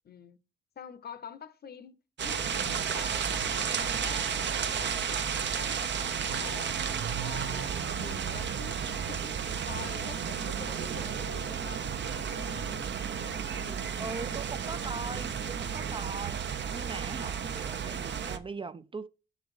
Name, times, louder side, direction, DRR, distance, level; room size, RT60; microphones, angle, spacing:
voice 1, 0.1-0.4 0.8-6.7 7.2-14.6 15.6-16.0, left 7 dB, 50° left, 0.8 m, -47 dB
sound 1, 2.2-18.4, right 7 dB, 60° right, 0.8 m, -32 dB
voice 2, 14.0-19.1, right 3 dB, 25° right, 0.4 m, -40 dB
6.8 x 4.0 x 4.9 m
wide cardioid pair, 125°, 20 cm